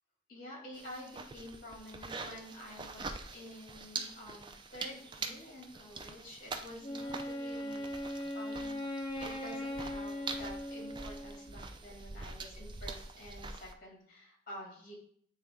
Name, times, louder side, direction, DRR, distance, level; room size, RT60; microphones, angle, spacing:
voice 1, 0.3-7.9 8.3-8.8 9.2-14.9, left 1 dB, 50° left, -2 dB, 2.2 m, -49 dB
sound 1, 0.7-13.7, right 4 dB, 25° right, 0.4 m, -45 dB
Wind instrument woodwind instrument, 6.8-11.6, left 1 dB, 25° left, 0.8 m, -39 dB
8.0 x 3.3 x 3.6 m, 0.62 s
head